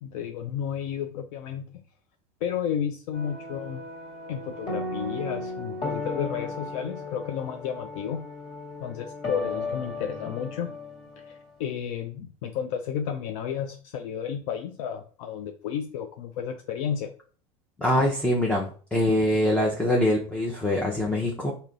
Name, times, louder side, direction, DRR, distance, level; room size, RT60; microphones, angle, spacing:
voice 1, 0.0-1.7 2.4-3.8 4.3-8.2 8.8-10.7 11.3-17.1, left 8 dB, 70° left, 6 dB, 0.5 m, -32 dB
sound 1, 3.1-11.5, left 2 dB, 40° left, 1.8 m, -36 dB
voice 2, 17.8-21.5, left 1 dB, 5° left, -2 dB, 0.6 m, -24 dB
3.2 x 2.8 x 3.8 m, 0.41 s
supercardioid pair, 125°, 18 cm